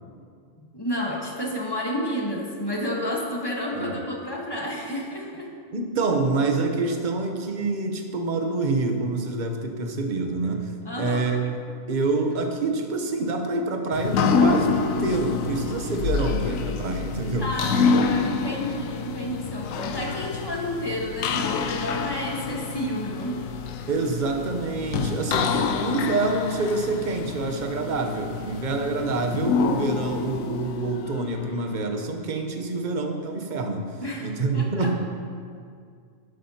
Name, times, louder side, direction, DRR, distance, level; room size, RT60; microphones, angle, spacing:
voice 1, 0.7-5.5 10.8-11.3 17.4-23.4 34.0-34.3 34.5-34.9, equal, 20° left, -2 dB, 1.2 m, -30 dB
voice 2, 5.7-10.7 11.0-11.6 11.9-18.1 23.9-34.9, right 3 dB, 40° right, 4 dB, 0.8 m, -27 dB
sound 1, 13.9-31.7, left 5 dB, 75° left, 1.0 m, -27 dB
11.5 x 11.0 x 2.8 m, 2.2 s
omnidirectional pair, 1.4 m